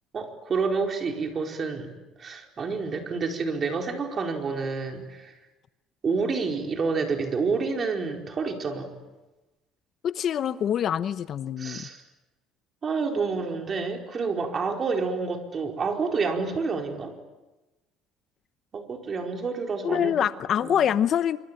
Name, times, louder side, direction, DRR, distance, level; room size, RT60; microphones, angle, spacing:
voice 1, 0.1-1.9 2.2-5.3 6.0-8.9 11.6-12.0 12.8-17.1 18.7-20.3 20.6-20.8, right 4 dB, 35° right, 3 dB, 4.6 m, -28 dB
voice 2, 10.0-11.9 19.8-21.4, left 9 dB, 45° left, 13 dB, 0.9 m, -25 dB
26.5 x 25.0 x 9.0 m, 1.1 s
cardioid pair, 125°, 0 cm